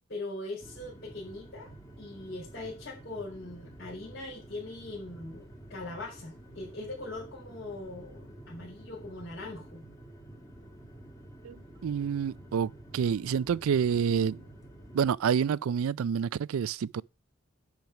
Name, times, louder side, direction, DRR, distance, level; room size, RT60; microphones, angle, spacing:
voice 1, 0.1-1.7 2.0-9.8, left 2 dB, 50° left, 4.6 m, -41 dB
sound 1, 0.6-15.2, right 1 dB, 15° left, 2.1 m, -50 dB
voice 2, 11.4-14.4 14.9-17.0, right 7 dB, 85° right, 0.4 m, -28 dB
10.5 x 4.6 x 5.8 m
head